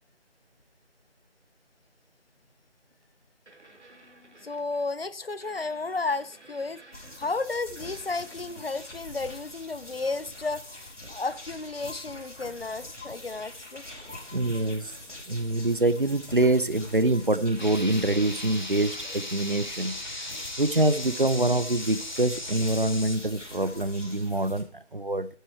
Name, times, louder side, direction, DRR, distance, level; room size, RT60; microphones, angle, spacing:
sound 1, 2.9-3.0 3.5-5.0 5.4-7.5 7.7-9.1 11.4-11.5, right 2 dB, 80° right, 2.6 m, -54 dB
voice 1, 4.4-6.8 7.2-10.8 11.1-13.8, left 3 dB, 55° left, 17 dB, 0.6 m, -32 dB
sound 2, 6.9-24.6, left 1 dB, 85° left, 4.3 m, -44 dB
voice 2, 14.3-14.9 15.3-19.9 20.6-24.7 24.9-25.3, right 2 dB, 50° right, 15 dB, 0.5 m, -25 dB
sound 3, 17.6-23.2, left 1 dB, 40° left, 1.1 m, -37 dB
9.0 x 7.9 x 4.5 m, 0.43 s
figure-of-eight pair, 175°, 35 cm